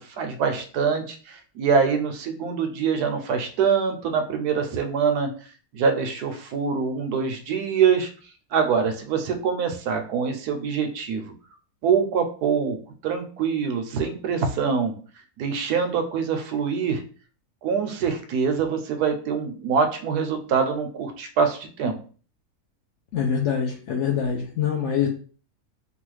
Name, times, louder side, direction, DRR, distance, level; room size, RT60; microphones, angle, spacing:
voice 1, 0.2-5.3 5.7-8.1 8.5-11.3 11.8-12.8 13.0-14.9 15.4-17.0 17.6-22.0, right 6 dB, 80° right, 6 dB, 1.1 m, -24 dB
voice 2, 23.1-25.1, left 7 dB, 70° left, 1 dB, 0.7 m, -24 dB
3.0 x 2.4 x 3.1 m, 0.40 s
omnidirectional pair, 1.7 m